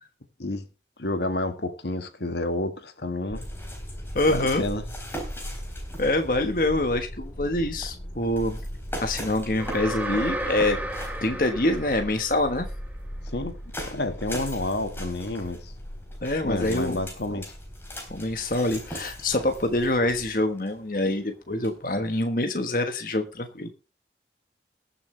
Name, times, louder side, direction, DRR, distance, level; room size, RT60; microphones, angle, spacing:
voice 1, 1.0-3.4 4.3-4.8 13.3-15.7 16.4-17.5, left 2 dB, 75° left, 1.7 m, -30 dB
sound 1, 3.3-20.3, equal, 35° left, 4.9 m, -39 dB
sound 2, 3.3-22.1, equal, 15° left, 3.8 m, -42 dB
voice 2, 4.1-4.6 6.0-8.6 9.0-10.8 11.2-12.7 16.2-17.0 17.3-17.4 18.1-23.7, left 1 dB, 50° left, 1.4 m, -25 dB
sound 3, 9.6-12.7, right 1 dB, 10° right, 1.6 m, -33 dB
21.0 x 7.1 x 3.3 m
head